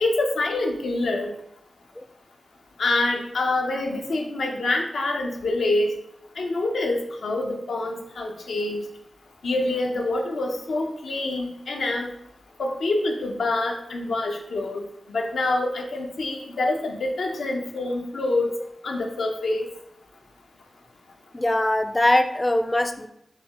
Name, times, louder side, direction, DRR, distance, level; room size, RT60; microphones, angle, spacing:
voice 1, 0.0-1.3 2.8-5.9 6.4-8.8 9.4-12.1 12.6-14.8 15.1-18.5 18.8-19.7, left 2 dB, 85° left, 2 dB, 0.7 m, -26 dB
voice 2, 21.3-23.1, left 1 dB, 20° left, 9 dB, 0.4 m, -22 dB
6.9 x 2.4 x 2.9 m, 0.76 s
cardioid pair, 55°, 0 cm